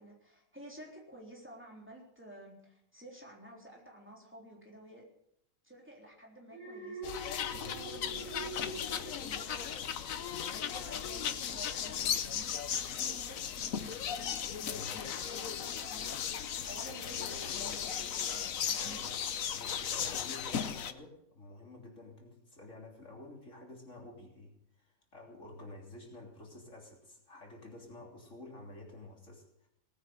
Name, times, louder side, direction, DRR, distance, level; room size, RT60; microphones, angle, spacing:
voice 1, 0.0-5.1 5.6-9.8 10.4-19.1, right 1 dB, 10° right, -1 dB, 3.7 m, -52 dB
Alarm, 6.5-9.8 10.2-10.5, right 3 dB, 25° right, 6.0 m, -45 dB
sound 1, 7.0-20.9, left 8 dB, 75° left, 1.3 m, -36 dB
voice 2, 18.8-19.2 19.5-29.7, left 2 dB, 60° left, 0 dB, 3.7 m, -50 dB
19.0 x 9.4 x 8.0 m, 0.75 s
omnidirectional pair, 1.4 m